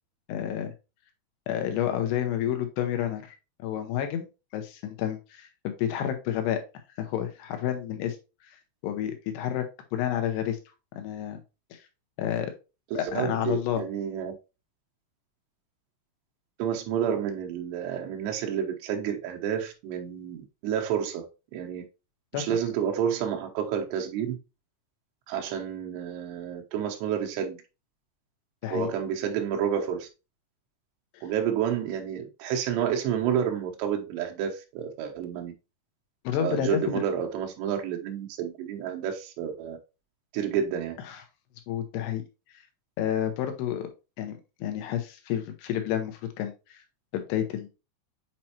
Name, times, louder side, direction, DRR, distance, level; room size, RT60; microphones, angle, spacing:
voice 1, 0.3-0.7 1.5-3.3 3.6-4.3 4.5-6.6 7.0-8.2 8.4-8.6 8.8-9.7 9.9-10.6 11.0-11.4 11.7-11.8 12.2-12.5 12.9-13.8 22.3-22.6 28.6-28.9 31.1-31.2 36.2-37.0 41.1-41.2 41.7-42.2 43.0-43.9 44.2-46.8 47.1-47.7, left 10 dB, 90° left, 3.0 m, -30 dB
voice 2, 12.9-14.4 16.6-21.3 21.5-21.9 22.3-24.4 25.3-27.6 28.7-30.1 31.2-35.5 36.4-39.8 40.3-41.0, right 8 dB, 90° right, 3.1 m, -30 dB
7.5 x 4.3 x 2.8 m
omnidirectional pair, 4.9 m